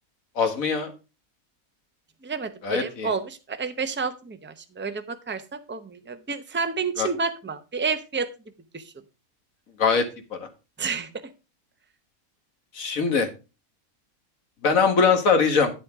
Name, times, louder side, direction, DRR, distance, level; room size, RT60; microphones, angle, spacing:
voice 1, 0.4-0.9 2.6-3.1 7.0-7.1 9.8-10.1 10.3-10.5 12.7-13.3 14.6-15.7, left 5 dB, 70° left, 7 dB, 2.0 m, -21 dB
voice 2, 2.2-8.3 8.7-8.9 10.8-11.1, right 5 dB, 10° right, 9 dB, 0.6 m, -30 dB
9.9 x 8.4 x 3.5 m, 0.30 s
omnidirectional pair, 1.5 m